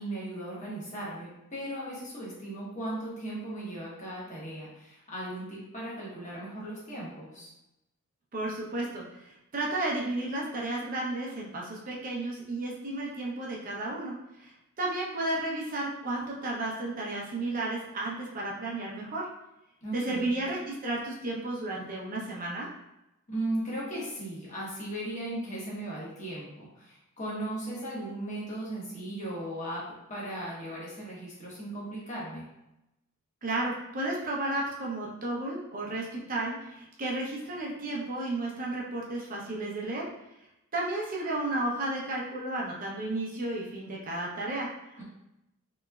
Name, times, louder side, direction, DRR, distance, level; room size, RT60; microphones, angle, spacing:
voice 1, 0.0-7.5 19.8-20.4 23.3-29.8 30.1-32.5 45.0-45.1, right 1 dB, 35° left, -6 dB, 1.1 m, -37 dB
voice 2, 8.3-14.5 14.8-19.3 19.9-22.7 33.4-40.0 40.7-45.0, right 2 dB, 40° right, -3 dB, 0.7 m, -33 dB
3.4 x 3.0 x 2.3 m, 0.90 s
head